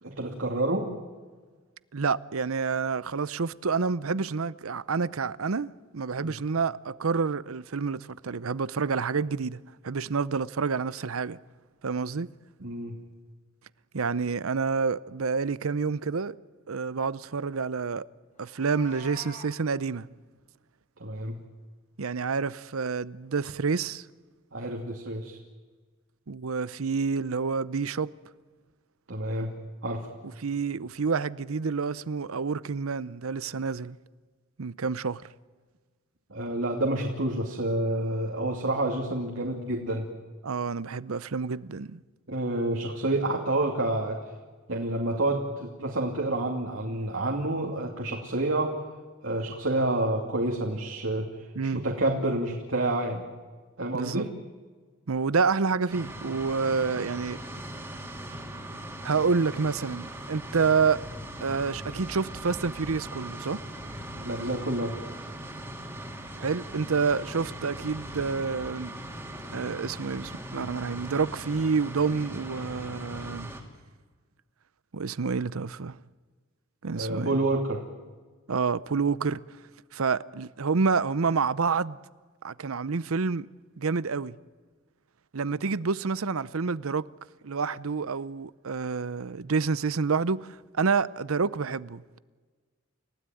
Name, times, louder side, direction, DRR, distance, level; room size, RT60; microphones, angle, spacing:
voice 1, 0.0-0.9 6.2-6.3 12.6-12.9 21.0-21.4 24.5-25.4 29.1-29.5 29.8-30.1 36.3-40.1 42.3-44.2 44.7-48.7 49.2-53.3 53.8-54.3 64.2-64.9 76.9-77.8, right 1 dB, 65° right, 2.6 m, -28 dB
voice 2, 1.9-11.4 11.8-12.3 13.9-16.4 16.7-18.1 18.4-20.1 22.0-24.0 26.3-28.1 30.4-34.0 34.6-35.2 40.4-42.0 51.6-51.8 53.9-54.2 55.1-57.4 59.0-61.0 61.4-63.6 66.4-68.9 69.5-73.5 74.9-76.0 76.8-77.4 78.5-79.4 79.9-82.0 82.4-83.5 83.8-84.4 85.3-87.1 87.4-92.2, right 5 dB, 90° right, 0.7 m, -28 dB
Meow, 18.4-19.5, left 1 dB, 35° left, 4.6 m, -46 dB
sound 1, 55.9-73.6, right 1 dB, 10° right, 3.0 m, -40 dB
29.5 x 16.5 x 9.2 m
head